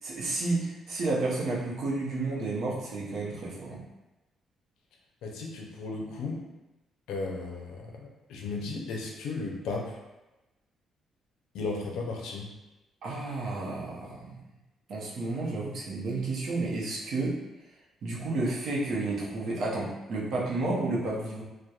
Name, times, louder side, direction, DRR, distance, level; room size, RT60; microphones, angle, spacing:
voice 1, 0.0-3.8 5.4-5.6 13.0-14.4 14.9-17.4 18.0-21.4, right 2 dB, 70° right, -4 dB, 0.6 m, -31 dB
voice 2, 5.2-6.4 7.1-10.0 11.5-12.5, left 3 dB, 85° left, -1 dB, 0.4 m, -35 dB
2.8 x 2.1 x 2.3 m, 1.0 s
cardioid pair, 90°, 0 cm